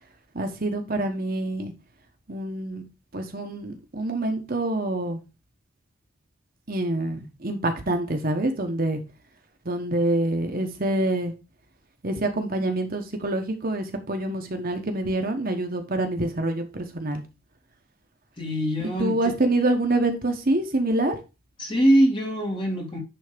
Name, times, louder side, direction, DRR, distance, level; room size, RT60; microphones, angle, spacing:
voice 1, 0.3-1.7 2.3-2.8 3.1-5.2 6.7-9.0 9.6-11.3 12.0-17.2 18.8-21.2, right 1 dB, 45° right, 1.2 m, -26 dB
voice 2, 18.4-19.3 21.6-23.0, right 1 dB, 25° left, 2.3 m, -23 dB
10.5 x 3.5 x 5.1 m
head